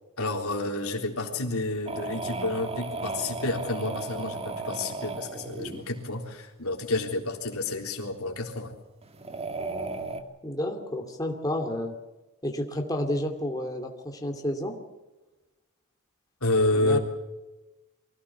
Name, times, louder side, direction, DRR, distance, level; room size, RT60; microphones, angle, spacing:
voice 1, 0.2-8.7 16.4-17.0, left 2 dB, 85° left, 2 dB, 3.8 m, -29 dB
sound 1, 1.9-6.0 9.0-10.2, right 3 dB, 30° right, 1.8 m, -35 dB
voice 2, 10.4-11.9 12.4-14.8 16.7-17.0, left 1 dB, 15° left, 3 dB, 2.5 m, -30 dB
24.0 x 16.5 x 7.1 m, 1.1 s
head